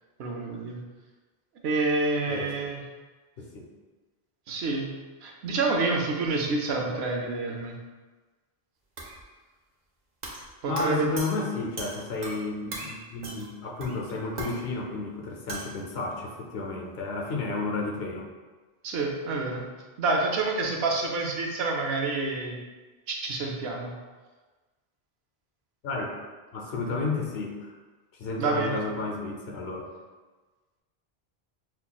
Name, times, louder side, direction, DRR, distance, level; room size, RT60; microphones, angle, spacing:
voice 1, 0.2-0.8 1.6-2.8 4.5-4.9 5.2-7.7 10.6-11.1 18.8-19.7 20.0-22.6 23.1-23.9 28.4-28.8, right 3 dB, 90° right, 1 dB, 0.8 m, -28 dB
voice 2, 3.4-3.7 10.7-18.3 25.8-26.1 26.5-27.7 28.2-29.9, left 3 dB, 80° left, 1 dB, 0.8 m, -32 dB
sound 1, 9.0-9.2 10.2-10.5 10.8-12.5 12.7-12.9 13.2-13.5 13.8-14.6 15.5-15.8, right 2 dB, 60° right, 0.8 m, -38 dB
5.5 x 2.3 x 2.3 m, 1.3 s
omnidirectional pair, 1.0 m